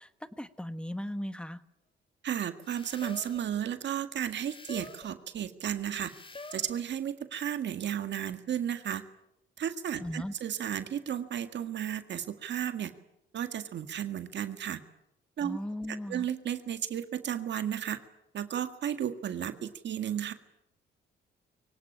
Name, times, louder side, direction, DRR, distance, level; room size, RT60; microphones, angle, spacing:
voice 1, 0.0-1.6 10.0-10.3 15.4-16.3, left 1 dB, 5° left, 12 dB, 1.2 m, -37 dB
voice 2, 2.2-6.1 6.5-9.0 9.6-12.9 13.3-14.8 15.4-15.6 15.9-18.0 18.3-20.3, right 9 dB, 65° right, 9 dB, 1.8 m, -33 dB
sound 1, 2.6-3.5 4.3-5.1 6.0-6.8, left 3 dB, 25° left, 2.2 m, -46 dB
23.5 x 17.5 x 9.9 m, 0.86 s
cardioid pair, 90°, 20 cm